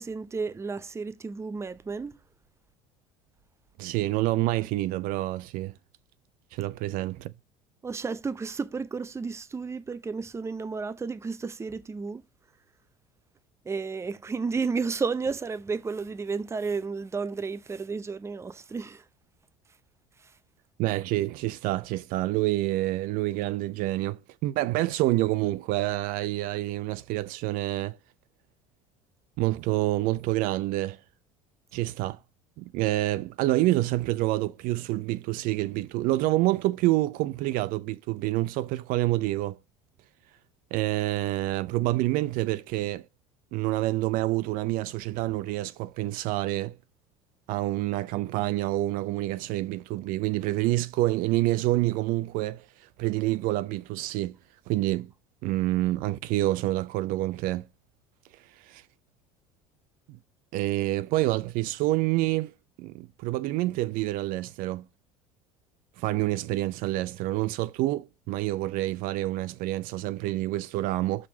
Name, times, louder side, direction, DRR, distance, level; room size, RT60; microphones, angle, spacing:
voice 1, 0.0-2.2 7.8-12.2 13.6-19.0 20.2-20.3, right 4 dB, 15° right, 0.6 m, -32 dB
voice 2, 3.8-5.7 6.5-7.3 20.8-28.0 29.4-31.0 31.7-32.2 32.6-39.6 40.7-43.1 43.5-46.8 47.5-52.7 53.0-54.4 54.7-55.1 55.4-57.7 58.6-58.8 60.1-60.2 60.5-62.5 62.8-64.9 66.0-71.3, right 17 dB, 55° right, 0.5 m, -27 dB
6.0 x 5.1 x 5.9 m
hypercardioid pair, 70°, 17 cm